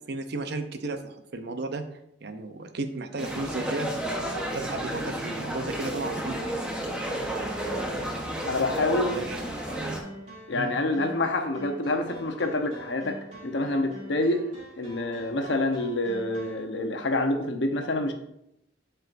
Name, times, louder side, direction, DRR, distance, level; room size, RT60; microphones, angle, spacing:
voice 1, 0.1-1.8 2.2-3.9 4.5-6.4 9.1-9.5 10.5-10.7, right 2 dB, 60° right, 8 dB, 0.7 m, -34 dB
sound 1, 3.2-10.0, right 1 dB, 5° right, 1.0 m, -32 dB
sound 2, 7.1-16.6, equal, 40° right, 2.5 m, -45 dB
voice 2, 8.5-9.1 10.5-14.4 14.8-18.1, left 2 dB, 70° left, 5 dB, 0.9 m, -27 dB
12.5 x 4.5 x 2.6 m, 0.80 s
head